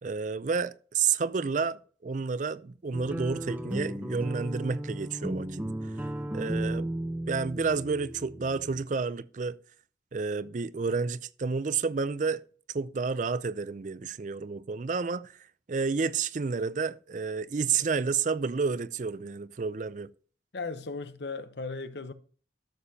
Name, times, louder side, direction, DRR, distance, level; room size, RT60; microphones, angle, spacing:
voice 1, 0.0-5.6 6.3-6.9 7.3-9.6 10.1-12.4 12.7-15.4 15.7-20.1, right 5 dB, 45° right, 0.4 m, -30 dB
sound 1, 2.9-8.8, right 1 dB, 10° right, 0.9 m, -35 dB
voice 2, 20.5-22.1, left 3 dB, 70° left, 0.9 m, -36 dB
13.0 x 6.9 x 2.8 m
head